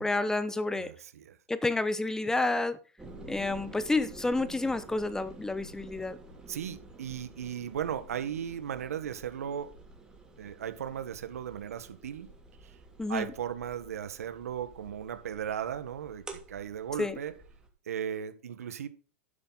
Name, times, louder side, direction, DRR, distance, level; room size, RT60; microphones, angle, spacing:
voice 1, 0.0-0.9 1.5-2.8 3.3-6.2 13.0-13.3 17.0-17.2, left 2 dB, 5° left, 1.0 m, -29 dB
voice 2, 0.8-1.4 6.5-9.7 10.4-12.3 12.6-12.8 13.1-17.4 17.8-18.9, right 9 dB, 85° right, 1.4 m, -36 dB
sound 1, 3.0-17.7, right 2 dB, 10° right, 2.7 m, -50 dB
12.0 x 8.8 x 4.0 m
hypercardioid pair, 125°, 8 cm